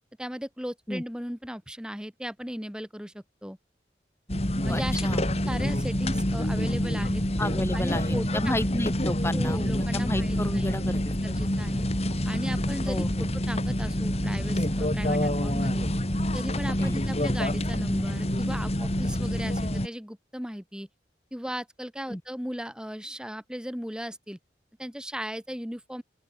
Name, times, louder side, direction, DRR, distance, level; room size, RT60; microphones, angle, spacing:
voice 1, 0.2-3.6 4.6-5.1 5.5-7.2 7.7-8.5 9.3-10.7 11.2-11.9 12.3-15.9 16.3-20.9 21.3-24.4 24.8-26.0, equal, 5° right, 3.6 m, -37 dB
sound 1, 4.3-19.9, left 1 dB, 35° left, 3.4 m, -27 dB
voice 2, 4.7-5.4 7.4-11.4 12.8-13.3 15.1-15.3 16.8-17.0 22.1-22.2, left 1 dB, 15° left, 3.3 m, -32 dB
open air
head